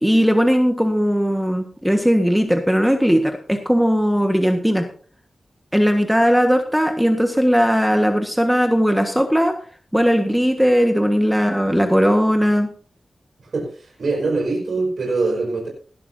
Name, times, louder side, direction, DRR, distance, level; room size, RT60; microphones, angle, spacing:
voice 1, 0.0-4.8 5.7-9.5 9.9-12.7, equal, 5° right, 4 dB, 1.6 m, -18 dB
voice 2, 13.4-15.7, right 3 dB, 65° right, 0 dB, 4.8 m, -23 dB
18.0 x 12.5 x 2.8 m, 0.42 s
wide cardioid pair, 85°, 0 cm